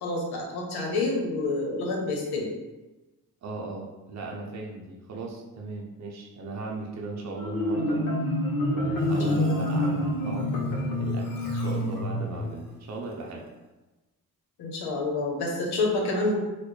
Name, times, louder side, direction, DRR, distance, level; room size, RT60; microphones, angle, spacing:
voice 1, 0.0-2.5 9.3-9.8 14.6-16.4, left 2 dB, 90° left, -1 dB, 0.9 m, -28 dB
voice 2, 3.4-8.1 8.7-13.5, right 3 dB, 45° right, -1 dB, 0.7 m, -37 dB
Marimba xylophone, 7.4-12.5, left 1 dB, 60° left, 1.0 m, -27 dB
4.1 x 2.0 x 3.2 m, 1.1 s
cardioid pair, 65°, 37 cm